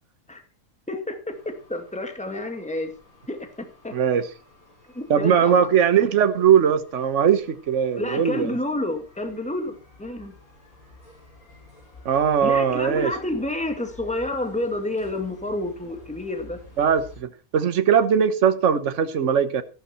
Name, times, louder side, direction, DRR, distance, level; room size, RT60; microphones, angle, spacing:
voice 1, 0.9-1.2 1.7-2.9 3.3-3.4 3.8-3.9 4.9-5.7 8.0-10.3 12.4-16.6, left 1 dB, 5° left, 2.2 m, -29 dB
sound 1, 1.3-17.2, left 2 dB, 85° left, 7.0 m, -51 dB
voice 2, 3.9-4.3 5.1-8.6 12.0-13.1 16.8-19.6, right 8 dB, 60° right, 1.4 m, -20 dB
14.0 x 12.0 x 4.3 m
omnidirectional pair, 1.5 m